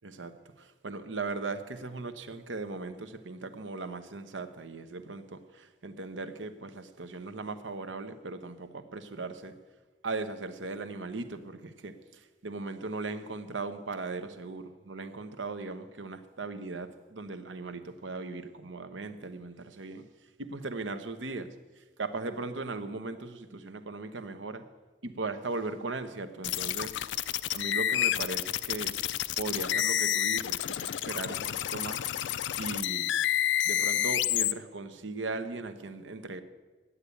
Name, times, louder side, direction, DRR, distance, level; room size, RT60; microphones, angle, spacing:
voice 1, 0.0-9.6 10.0-20.0 20.4-21.5 21.8-24.6 25.0-27.0 27.2-28.9 29.4-32.1 32.6-33.1 33.6-36.4, right 3 dB, 90° right, 9 dB, 0.9 m, -38 dB
sound 1, 26.4-34.5, left 12 dB, 80° left, 0.4 m, -29 dB
9.8 x 8.1 x 8.4 m, 1.3 s
head